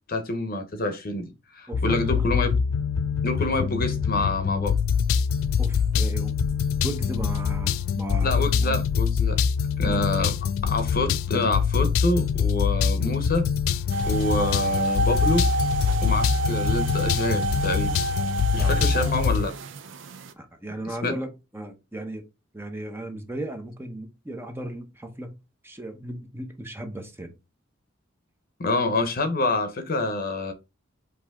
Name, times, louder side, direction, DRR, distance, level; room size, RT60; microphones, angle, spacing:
voice 1, 0.1-2.6 3.2-4.7 8.2-9.4 9.8-10.3 10.6-13.5 14.0-15.4 16.0-17.9 18.5-19.5 21.0-21.1 28.6-30.5, left 2 dB, 45° left, 0.8 m, -27 dB
sound 1, 1.7-19.5, left 6 dB, 85° left, 0.3 m, -24 dB
voice 2, 1.7-2.1 5.6-6.3 6.8-8.8 9.8-10.1 13.0-13.2 18.6-19.1 20.3-22.2 22.5-25.3 25.6-27.3, right 1 dB, 10° right, 0.7 m, -36 dB
sound 2, 13.9-20.3, right 3 dB, 65° right, 0.5 m, -29 dB
5.3 x 2.8 x 3.6 m
head